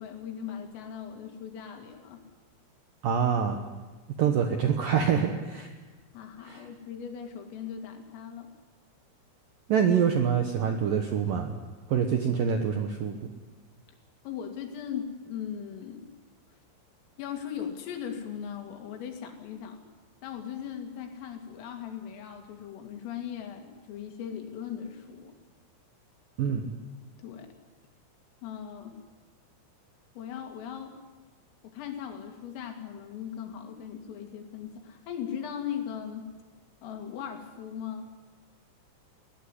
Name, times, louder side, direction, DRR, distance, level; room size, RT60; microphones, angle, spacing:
voice 1, 0.0-2.2 4.3-4.4 6.1-8.5 14.2-16.1 17.2-19.8 20.2-25.3 27.2-27.5 28.4-29.0 30.2-31.0 31.6-36.3 36.8-38.1, left 8 dB, 85° left, 4 dB, 4.9 m, -38 dB
voice 2, 3.0-3.6 4.2-5.7 6.4-6.7 9.7-11.6 11.9-13.3 26.4-26.7, right 7 dB, 75° right, 4 dB, 2.0 m, -26 dB
21.0 x 17.0 x 10.0 m, 1.3 s
omnidirectional pair, 5.8 m